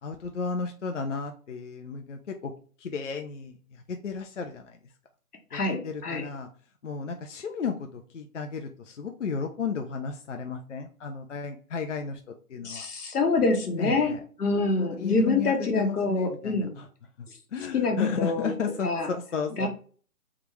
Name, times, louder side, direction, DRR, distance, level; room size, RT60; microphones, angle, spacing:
voice 1, 0.0-2.5 2.8-4.8 5.5-6.5 6.8-12.9 13.8-14.2 14.6-16.9 17.5-19.7, left 5 dB, 55° left, 4 dB, 0.5 m, -33 dB
voice 2, 5.5-6.3 12.6-14.1 14.4-16.7 17.7-18.5 18.8-19.1 19.6-19.7, left 3 dB, 80° left, 4 dB, 1.2 m, -26 dB
3.6 x 2.4 x 4.4 m, 0.42 s
hypercardioid pair, 165°, 45 cm